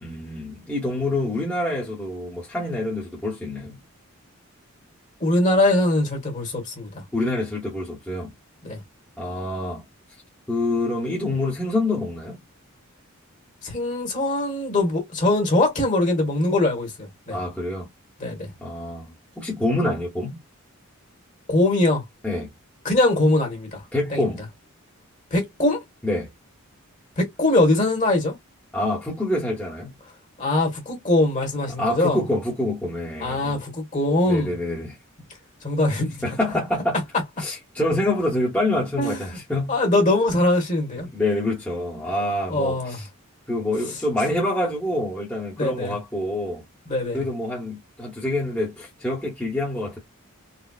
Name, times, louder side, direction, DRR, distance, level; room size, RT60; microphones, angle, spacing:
voice 1, 0.0-3.8 7.1-8.3 9.2-9.8 10.5-12.4 17.3-17.9 18.6-20.4 22.2-22.5 23.9-24.4 26.0-26.3 28.7-29.9 31.7-33.6 34.2-35.0 36.2-37.0 37.4-39.7 41.0-43.1 43.5-46.6 47.1-50.0, left 1 dB, 5° left, 1.1 m, -26 dB
voice 2, 5.2-7.0 8.6-8.8 13.6-17.4 18.2-18.5 21.5-22.0 22.8-23.8 24.1-24.3 25.3-25.8 27.2-28.3 30.4-32.2 33.2-34.5 35.6-36.1 39.0-39.2 39.7-41.1 42.5-43.0 45.6-46.0 46.9-47.2, left 2 dB, 35° left, 1.5 m, -22 dB
4.1 x 2.3 x 2.4 m
head